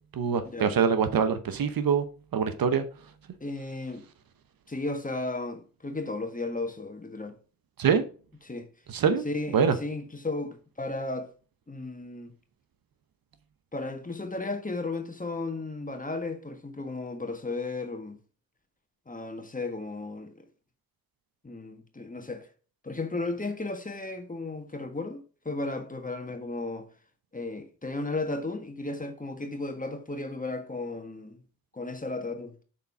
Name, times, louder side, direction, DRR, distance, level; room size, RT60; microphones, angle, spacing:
voice 1, 0.1-2.1 2.3-2.8 7.8-8.0 8.9-9.2 9.5-9.8, right 6 dB, 60° right, 1.0 m, -24 dB
voice 2, 3.4-4.0 4.7-7.4 8.4-8.7 9.2-11.3 11.7-12.3 13.7-18.2 19.1-20.5 21.4-22.5 22.8-26.9 27.3-31.4 31.7-32.5, left 2 dB, 20° left, 1.5 m, -34 dB
6.8 x 4.3 x 4.8 m
supercardioid pair, 45°, 39 cm